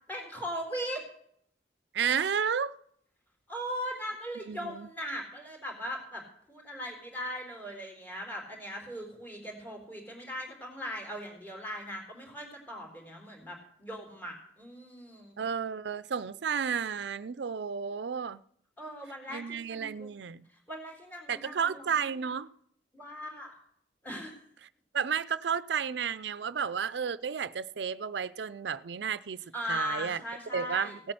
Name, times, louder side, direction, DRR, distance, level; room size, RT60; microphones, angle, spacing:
voice 1, 0.1-1.0 3.5-15.4 18.8-20.1 20.5-22.3 22.9-23.6 24.0-24.3 29.5-31.0, equal, 10° left, 3.8 m, -39 dB
voice 2, 1.9-2.8 4.5-4.9 15.4-18.4 19.3-20.5 21.3-22.5 24.9-29.4 29.7-30.2 30.5-31.1, right 7 dB, 75° right, 0.5 m, -32 dB
17.0 x 8.5 x 7.7 m
head